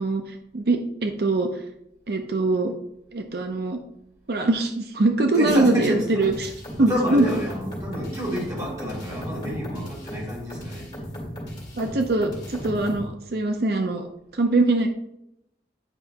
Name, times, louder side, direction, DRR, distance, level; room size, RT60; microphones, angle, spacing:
voice 1, 0.0-1.6 2.1-2.7 3.1-3.8 4.3-6.5 6.8-7.3 11.8-14.1 14.3-14.9, right 2 dB, 60° right, 5 dB, 0.6 m, -23 dB
voice 2, 5.3-6.3 6.8-10.9, equal, 20° right, -5 dB, 2.4 m, -29 dB
sound 1, 6.2-13.1, equal, 25° left, 2.5 m, -36 dB
9.2 x 5.5 x 2.9 m, 0.83 s
head